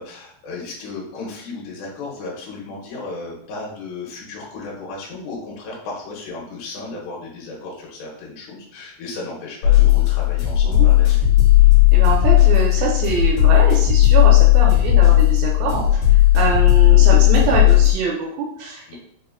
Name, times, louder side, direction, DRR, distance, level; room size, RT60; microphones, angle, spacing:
voice 1, 0.0-11.2 18.9-19.0, left 3 dB, 80° left, -3 dB, 3.0 m, -34 dB
sound 1, 9.6-17.9, left 15 dB, 65° left, 2.3 m, -14 dB
voice 2, 11.9-16.0 16.3-19.0, right 5 dB, 90° right, -2 dB, 2.1 m, -24 dB
6.8 x 2.4 x 2.2 m, 0.67 s
omnidirectional pair, 4.9 m